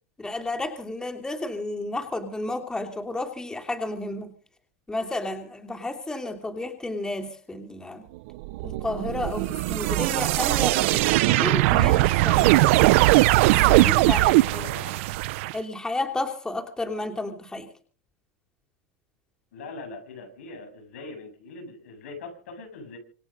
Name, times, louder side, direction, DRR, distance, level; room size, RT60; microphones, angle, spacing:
voice 1, 0.2-4.3 4.9-8.0 8.6-13.0 13.5-14.7 15.5-17.7, left 2 dB, 10° left, 5 dB, 2.9 m, -32 dB
sound 1, 8.4-15.5, right 19 dB, 65° right, 0.9 m, -20 dB
voice 2, 14.5-14.9 19.5-23.0, left 3 dB, 80° left, 5 dB, 7.9 m, -41 dB
26.5 x 9.6 x 5.3 m, 0.43 s
supercardioid pair, 120°, 7 cm